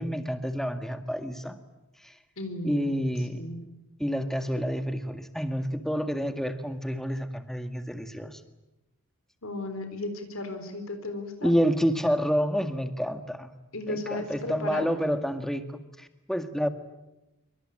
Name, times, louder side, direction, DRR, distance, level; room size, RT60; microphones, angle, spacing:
voice 1, 0.0-1.6 2.0-2.1 2.6-3.4 4.0-8.4 11.4-13.5 13.9-16.7, equal, ahead, 8 dB, 1.8 m, -29 dB
voice 2, 2.4-2.9 3.3-3.6 9.4-11.5 13.7-14.9, left 2 dB, 70° left, 7 dB, 4.1 m, -35 dB
26.0 x 24.5 x 8.9 m, 0.95 s
head